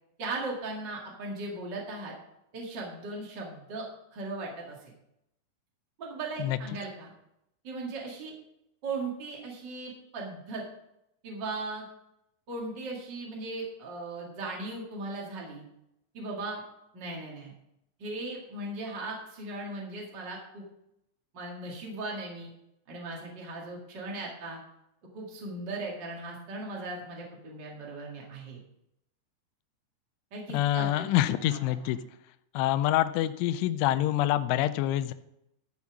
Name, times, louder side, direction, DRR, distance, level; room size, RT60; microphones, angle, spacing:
voice 1, 0.2-2.1 2.5-3.8 4.1-4.9 6.0-7.1 7.6-8.3 8.8-10.6 11.2-11.8 12.5-15.6 16.1-16.6 16.9-17.5 18.0-20.6 21.3-22.5 22.9-24.6 25.1-28.6 30.3-31.6, right 2 dB, 60° right, -2 dB, 1.1 m, -38 dB
voice 2, 30.5-32.0 32.5-35.1, left 13 dB, 85° left, 11 dB, 2.9 m, -26 dB
13.5 x 5.6 x 6.0 m, 0.82 s
omnidirectional pair, 5.7 m